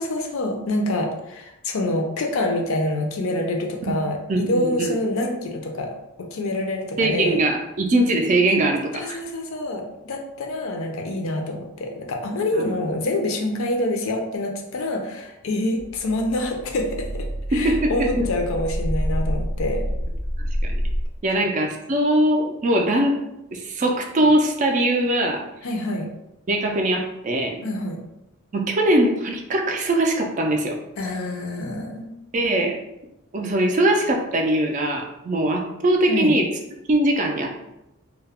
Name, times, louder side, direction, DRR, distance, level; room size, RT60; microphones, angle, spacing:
voice 1, 0.0-7.4 8.9-19.9 25.6-26.1 27.6-28.0 31.0-32.1 36.1-36.4, left 1 dB, 65° left, 3 dB, 0.4 m, -26 dB
voice 2, 4.3-5.0 7.0-9.2 12.6-12.7 17.5-18.3 20.4-20.8 21.2-23.2 23.5-25.4 26.5-27.7 28.5-30.8 32.3-32.7 33.3-36.5 36.9-37.5, right 1 dB, 35° right, 2 dB, 0.3 m, -21 dB
sound 1, 15.8-21.1, equal, 80° right, 0.6 m, -27 dB
2.2 x 2.0 x 3.4 m, 0.88 s
head